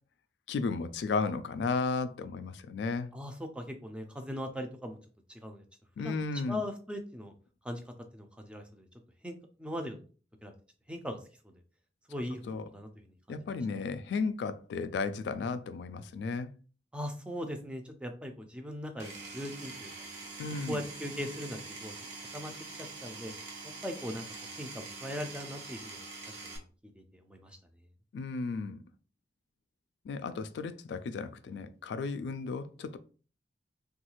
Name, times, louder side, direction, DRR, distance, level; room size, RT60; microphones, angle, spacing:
voice 1, 0.5-3.1 6.0-6.6 12.5-12.6 13.3-16.5 20.4-20.8 28.1-28.8 30.1-33.0, left 4 dB, 75° left, 0.3 m, -34 dB
voice 2, 3.1-5.0 5.3-5.6 6.0-6.2 6.5-7.3 7.6-7.8 8.1-8.9 9.2-9.3 9.6-10.0 10.4-10.5 10.9-11.2 11.4-11.5 12.1-12.9 13.3-13.4 16.9-20.1 20.7-21.9 22.3-22.5 22.8-23.3 23.8-24.3 24.6-26.0 26.3-26.6 27.0-27.6, equal, 5° right, 0.3 m, -39 dB
Power tool, 19.0-26.6, right 3 dB, 85° right, 0.9 m, -44 dB
3.1 x 2.3 x 3.0 m
head